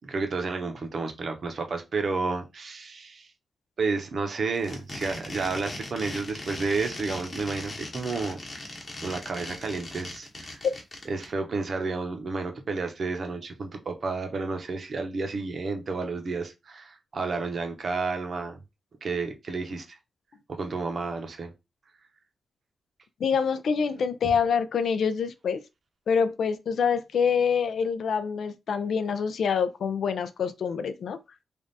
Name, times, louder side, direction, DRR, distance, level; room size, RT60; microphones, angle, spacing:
voice 1, 0.0-3.3 3.8-8.4 9.0-10.6 11.1-18.6 19.0-19.8 20.5-21.5, right 4 dB, 45° right, 0.8 m, -31 dB
sound 1, 4.5-11.3, left 2 dB, 30° left, 1.1 m, -39 dB
voice 2, 23.2-25.6 26.1-31.2, left 6 dB, 70° left, 0.4 m, -26 dB
3.4 x 2.4 x 4.0 m
wide cardioid pair, 165°, 0 cm